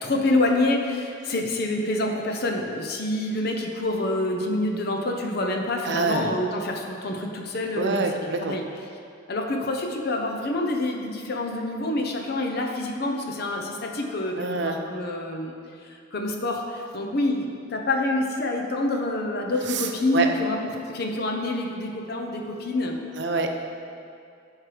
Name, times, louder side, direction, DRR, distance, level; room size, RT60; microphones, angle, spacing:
voice 1, 0.0-8.6 9.3-15.6 16.1-20.6 20.9-23.0, left 2 dB, 55° left, 2 dB, 0.8 m, -27 dB
voice 2, 5.8-6.3 7.8-8.6 14.4-14.8 19.7-20.3 23.1-23.5, right 3 dB, 60° right, 4 dB, 0.6 m, -26 dB
11.5 x 4.6 x 3.3 m, 2.4 s
head